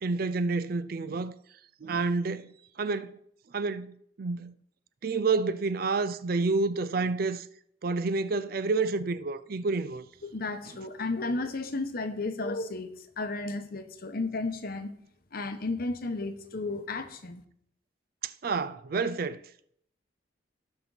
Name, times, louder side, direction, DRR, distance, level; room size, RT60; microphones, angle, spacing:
voice 1, 0.0-1.3 1.8-3.1 3.5-4.5 5.0-7.5 7.8-10.0 18.2-19.4, right 3 dB, 50° right, 0.5 m, -29 dB
voice 2, 10.2-14.9 15.3-17.4, left 3 dB, 50° left, 1.0 m, -33 dB
17.5 x 6.0 x 4.0 m
head